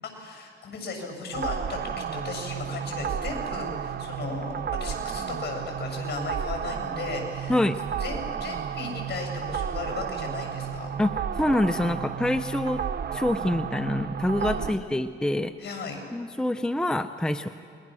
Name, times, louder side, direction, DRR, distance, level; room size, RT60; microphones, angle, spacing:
voice 1, 0.0-4.5 4.8-7.6 8.0-10.9 14.4-14.6 15.6-16.0, left 4 dB, 55° left, 3 dB, 7.0 m, -36 dB
sound 1, 1.3-14.7, right 8 dB, 50° right, 0.9 m, -32 dB
voice 2, 11.4-12.8 13.1-15.5 16.1-17.5, left 1 dB, 5° left, 9 dB, 0.7 m, -26 dB
28.5 x 22.0 x 6.4 m, 2.4 s
cardioid pair, 90°, 20 cm